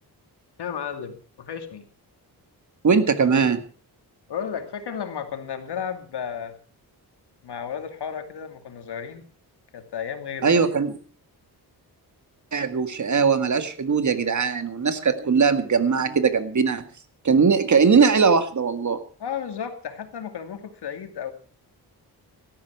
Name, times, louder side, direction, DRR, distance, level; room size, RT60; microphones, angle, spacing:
voice 1, 0.6-1.9 4.3-6.6 7.4-9.2 9.7-10.7 19.2-21.3, left 7 dB, 85° left, 6 dB, 2.7 m, -33 dB
voice 2, 2.8-3.6 10.4-10.9 12.5-16.8 17.2-19.0, right 5 dB, 45° right, 9 dB, 2.1 m, -20 dB
17.5 x 13.5 x 4.7 m, 0.39 s
wide cardioid pair, 115°, 39 cm